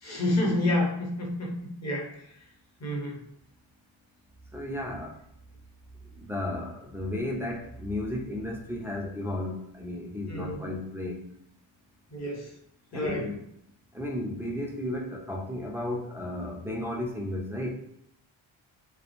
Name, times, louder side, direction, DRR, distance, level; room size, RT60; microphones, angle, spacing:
voice 1, 0.0-1.5 1.8-2.1 2.8-3.2 10.3-10.6 12.1-12.5 12.9-13.3, left 1 dB, 35° left, 0 dB, 0.7 m, -28 dB
voice 2, 4.5-5.2 6.0-11.2 12.9-13.4 13.9-17.7, left 1 dB, 5° right, -1 dB, 0.3 m, -34 dB
2.3 x 2.0 x 2.9 m, 0.74 s
cardioid pair, 95°, 49 cm